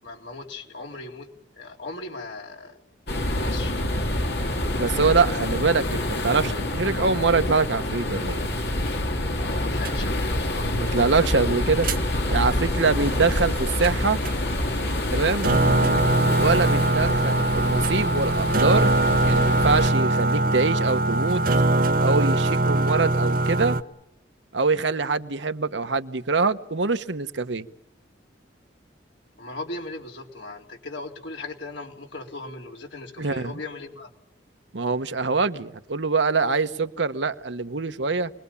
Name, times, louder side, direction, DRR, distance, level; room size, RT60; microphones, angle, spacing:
voice 1, 0.0-2.8 3.1-3.8 9.5-10.8 29.4-34.1, left 2 dB, 80° left, 2 dB, 3.7 m, -38 dB
sound 1, 3.1-19.9, left 1 dB, 60° left, 2.9 m, -27 dB
voice 2, 4.8-8.4 10.8-11.9 12.3-14.2 15.1-15.5 16.3-19.0 19.2-21.4 22.0-23.8 24.5-27.7 33.2-33.5 34.7-38.3, right 4 dB, 85° right, 10 dB, 1.1 m, -24 dB
sound 2, 9.8-9.9 11.8-12.0 13.8-13.9 14.2-14.3 14.9-15.0 15.3-23.8, right 2 dB, 50° right, 1.0 m, -21 dB
28.5 x 21.0 x 7.1 m, 0.83 s
head